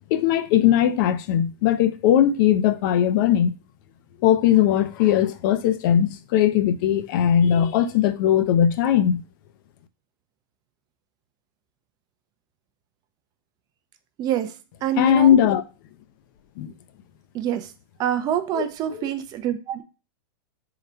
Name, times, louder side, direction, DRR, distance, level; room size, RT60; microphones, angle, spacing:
voice 1, 0.1-3.5 4.2-9.2 15.0-15.6 16.6-16.7 18.5-18.6, left 10 dB, 55° left, 0.4 m, -19 dB
voice 2, 14.2-14.5 14.8-15.3 17.3-17.7 18.0-19.8, right 10 dB, 30° right, 0.4 m, -26 dB
3.8 x 2.2 x 4.3 m
hypercardioid pair, 130°, 13 cm